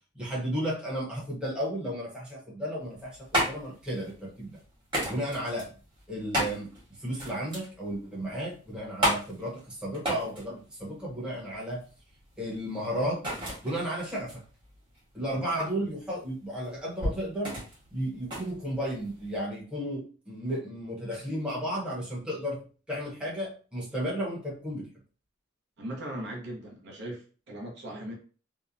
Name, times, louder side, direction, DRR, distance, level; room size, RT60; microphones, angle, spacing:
voice 1, 0.1-4.6 5.1-5.7 6.1-6.7 7.0-11.8 12.4-13.2 13.6-14.4 15.1-17.5 17.9-22.6 22.9-24.9, equal, 5° right, -6 dB, 0.8 m, -33 dB
sound 1, 2.8-19.4, equal, 25° right, 1.1 m, -34 dB
voice 2, 25.8-28.1, right 1 dB, 60° right, -1 dB, 0.7 m, -39 dB
2.8 x 2.1 x 2.4 m, 0.37 s
head